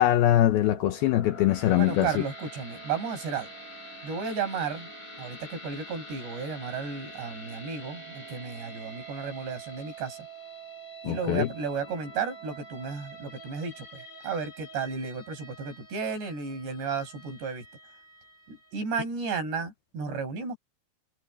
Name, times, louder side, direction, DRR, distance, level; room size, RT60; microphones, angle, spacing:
voice 1, 0.0-2.1 11.1-11.5, left 13 dB, 75° left, 2.4 m, -22 dB
sound 1, 0.6-18.8, right 2 dB, 45° left, 8.4 m, -46 dB
voice 2, 1.8-3.5 4.0-4.9 5.2-10.2 11.0-17.6 18.5-20.6, right 5 dB, 70° right, 8.3 m, -33 dB
omnidirectional pair, 5.1 m